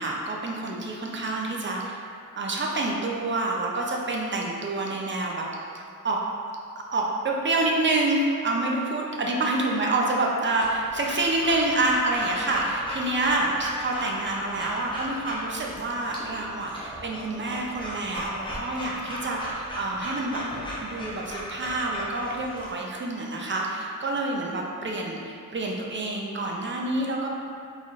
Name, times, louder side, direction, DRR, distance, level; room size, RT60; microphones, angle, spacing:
voice 1, 0.0-2.0 2.4-5.4 6.0-6.2 6.9-20.4 20.8-27.3, right 2 dB, 35° right, -1 dB, 0.5 m, -27 dB
Breathing / Dog, 10.6-22.7, equal, 15° left, 0.7 m, -36 dB
4.0 x 3.0 x 2.4 m, 2.5 s
wide cardioid pair, 120°, 33 cm